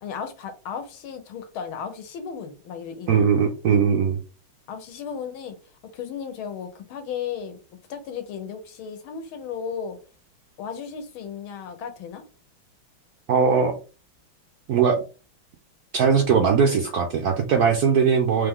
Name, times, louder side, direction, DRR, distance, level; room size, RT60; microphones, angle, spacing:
voice 1, 0.0-3.2 4.7-5.6 5.9-7.6 7.9-10.0 10.6-12.2, left 7 dB, 80° left, 1.7 m, -35 dB
voice 2, 3.1-4.2 13.3-13.7 14.7-15.0 15.9-18.5, right 6 dB, 70° right, 0.9 m, -20 dB
3.7 x 3.4 x 3.6 m
omnidirectional pair, 2.3 m